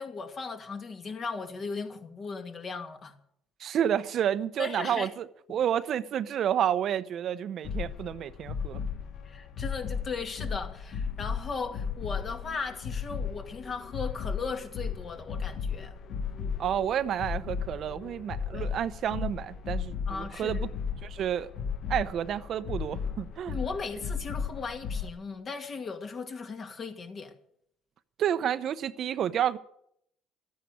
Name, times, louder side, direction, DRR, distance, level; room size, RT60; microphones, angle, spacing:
voice 1, 0.0-3.1 4.6-5.1 9.2-15.9 18.5-18.7 20.1-20.7 23.5-27.3, left 4 dB, 40° left, 2.4 m, -37 dB
voice 2, 3.6-8.8 16.6-20.7 21.0-21.5 21.9-23.6 28.2-29.6, right 10 dB, 55° right, 0.8 m, -30 dB
sound 1, 7.6-25.1, left 6 dB, 55° left, 1.2 m, -35 dB
13.0 x 9.5 x 9.3 m
supercardioid pair, 85°, 0 cm